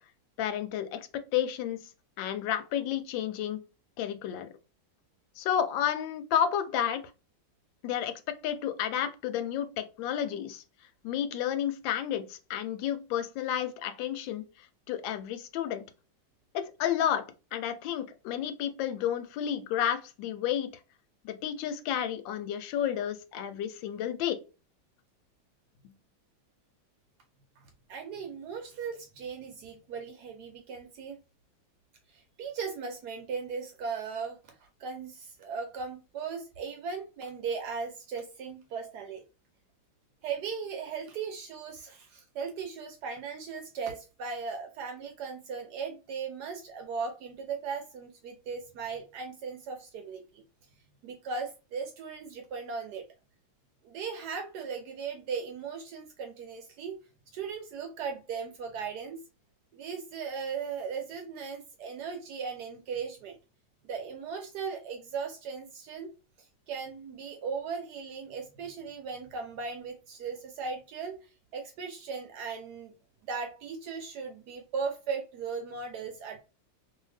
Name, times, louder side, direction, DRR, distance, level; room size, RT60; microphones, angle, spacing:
voice 1, 0.4-1.8 2.2-3.6 4.0-4.5 5.4-7.1 7.8-10.6 11.0-14.4 14.9-15.8 16.5-20.8 21.2-24.4, left 10 dB, 80° left, 1.3 m, -31 dB
voice 2, 27.6-31.2 32.1-39.2 40.2-50.2 51.0-53.0 53.8-56.9 57.3-59.2 59.7-63.4 63.9-66.1 66.7-71.2 71.5-72.9 73.3-76.4, right 5 dB, 70° right, 1.0 m, -37 dB
2.7 x 2.7 x 3.1 m
omnidirectional pair, 2.0 m